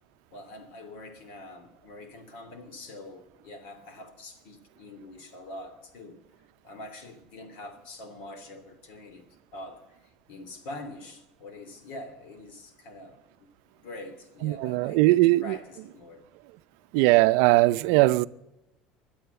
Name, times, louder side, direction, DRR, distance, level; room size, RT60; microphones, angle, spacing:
voice 1, 0.3-6.2 6.6-13.5 13.8-16.2, left 1 dB, 60° left, 2.8 m, -44 dB
voice 2, 14.4-15.4 16.9-18.3, right 19 dB, 70° right, 0.5 m, -20 dB
22.5 x 8.6 x 6.9 m
cardioid pair, 165°, 3 cm